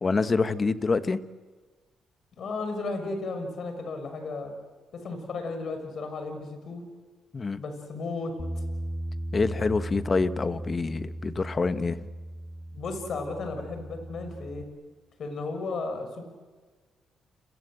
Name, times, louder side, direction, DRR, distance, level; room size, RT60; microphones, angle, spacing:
voice 1, 0.0-1.2 7.3-7.6 9.3-12.1, left 4 dB, 30° left, 12 dB, 1.3 m, -26 dB
voice 2, 2.4-4.5 4.9-6.8 7.6-8.6 12.7-14.6 15.2-16.2, left 3 dB, 55° left, 7 dB, 6.7 m, -34 dB
Bass guitar, 8.4-14.6, right 1 dB, 15° left, 3.0 m, -37 dB
30.0 x 23.0 x 7.9 m, 1.4 s
cardioid pair, 90°, 0 cm